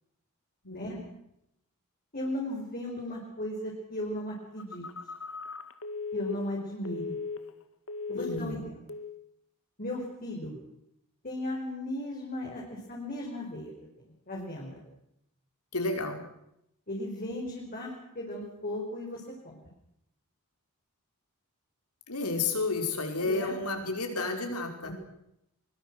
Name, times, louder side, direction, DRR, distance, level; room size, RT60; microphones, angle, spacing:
voice 1, 0.6-1.1 8.1-8.7 15.7-16.3 22.1-24.9, left 3 dB, 90° left, 4 dB, 5.2 m, -31 dB
voice 2, 2.1-4.8 6.1-7.2 8.1-8.6 9.8-10.5 11.2-13.7 14.3-14.8 16.9-19.6 23.2-23.5 24.8-24.9, left 1 dB, 40° left, -2 dB, 5.2 m, -36 dB
Telephone, 4.6-7.6 7.9-8.6 8.9-9.2, left 4 dB, 65° left, 2.0 m, -38 dB
23.5 x 23.5 x 6.3 m, 0.80 s
head